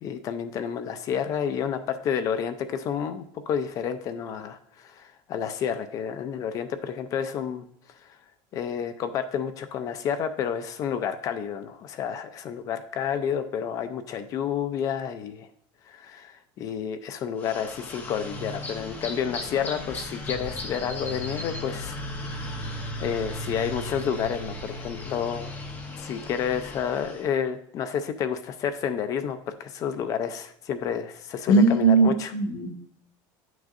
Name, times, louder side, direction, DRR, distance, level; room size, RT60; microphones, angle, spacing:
voice 1, 0.0-7.7 8.5-15.5 15.9-22.0 22.4-25.5 26.0-32.3, left 8 dB, 35° left, 9 dB, 0.5 m, -30 dB
sound 1, 17.4-27.3, left 1 dB, 20° left, 0.9 m, -36 dB
voice 2, 31.5-32.7, right 3 dB, 90° left, 5 dB, 1.2 m, -19 dB
10.5 x 6.1 x 2.5 m, 0.70 s
cardioid pair, 180°, 11 cm